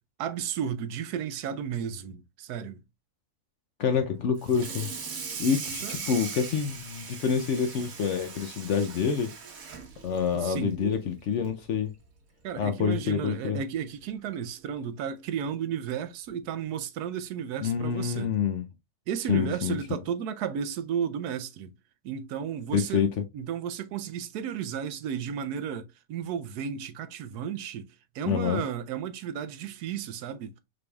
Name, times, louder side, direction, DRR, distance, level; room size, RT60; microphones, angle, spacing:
voice 1, 0.2-2.8 5.7-6.0 10.3-10.8 12.4-18.3 19.1-21.7 22.0-23.0 23.3-27.9 28.1-30.5, right 8 dB, 80° right, 1.1 m, -33 dB
voice 2, 3.8-4.9 5.4-9.3 10.0-11.9 12.6-13.6 17.6-18.6 19.3-20.0 22.7-23.1 28.3-28.6, left 7 dB, 65° left, 0.8 m, -27 dB
Water tap faucet / Sink (filling or washing), 4.4-11.0 11.4-11.7 12.0-12.1 12.5-12.6 13.8-13.9 14.3-14.5, right 5 dB, 65° right, 1.4 m, -39 dB
6.0 x 3.3 x 2.3 m
omnidirectional pair, 1.6 m